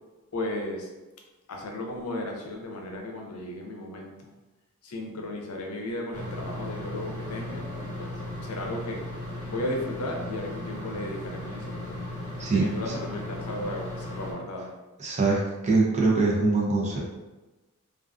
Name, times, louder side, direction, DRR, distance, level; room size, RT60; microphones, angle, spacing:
voice 1, 0.3-0.9 1.5-4.3 4.8-9.0 9.5-12.0 12.5-14.7, left 1 dB, 80° left, 1 dB, 0.5 m, -35 dB
sound 1, 6.1-14.3, left 1 dB, 30° left, 0.8 m, -36 dB
voice 2, 15.0-17.0, right 3 dB, 30° right, -3 dB, 0.6 m, -23 dB
2.4 x 2.4 x 2.4 m, 1.1 s
head